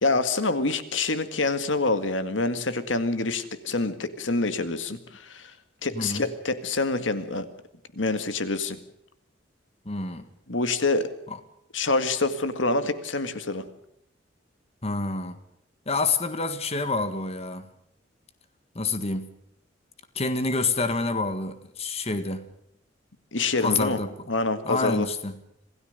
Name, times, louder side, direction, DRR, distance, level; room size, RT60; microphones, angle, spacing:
voice 1, 0.0-5.5 5.8-7.5 8.0-8.8 10.5-11.1 11.7-13.6 23.3-24.0 24.3-25.1, left 3 dB, 90° left, 1.9 m, -26 dB
voice 2, 5.9-6.3 9.8-10.3 14.8-15.4 15.8-17.7 18.7-19.3 20.1-22.4 23.6-24.1 24.6-25.3, left 3 dB, 35° left, 1.7 m, -27 dB
27.0 x 17.0 x 6.7 m
head